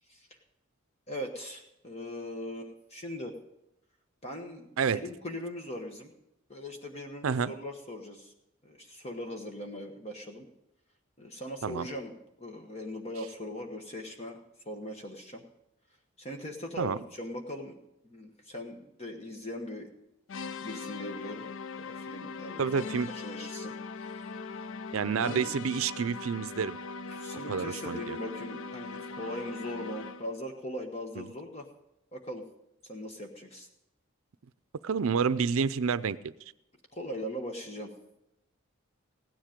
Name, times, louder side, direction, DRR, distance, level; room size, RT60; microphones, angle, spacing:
voice 1, 1.1-3.3 4.2-6.1 6.5-8.3 8.6-10.4 11.2-14.4 14.6-15.4 16.2-17.8 18.0-19.9 20.6-21.5 21.8-22.7 23.1-24.7 25.2-25.4 27.1-31.7 32.1-32.4 32.8-33.7 36.9-37.9, left 1 dB, 30° left, 3 dB, 1.2 m, -40 dB
sound 1, 20.3-30.4, left 4 dB, 65° left, 0.4 m, -40 dB
voice 2, 22.6-23.1 24.9-26.8 27.5-28.2 31.2-31.3 34.8-36.2, right 6 dB, 80° right, 16 dB, 0.5 m, -29 dB
16.0 x 10.5 x 5.1 m, 0.84 s
head